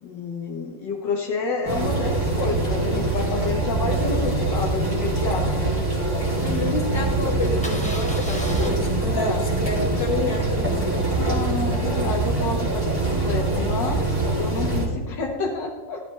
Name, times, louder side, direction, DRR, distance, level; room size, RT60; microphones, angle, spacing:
voice 1, 0.0-5.9 9.1-9.5 11.1-12.9 13.2-16.0, left 4 dB, 70° left, 1 dB, 1.7 m, -29 dB
sound 1, 1.6-14.9, right 2 dB, 10° right, 2.5 m, -24 dB
Engine starting, 3.9-6.4 6.8-6.9 7.1-7.3 7.5-8.7, equal, 5° left, 1.1 m, -39 dB
voice 2, 6.4-10.8, left 2 dB, 30° left, -3 dB, 2.8 m, -29 dB
13.0 x 12.0 x 3.2 m, 1.4 s
omnidirectional pair, 2.0 m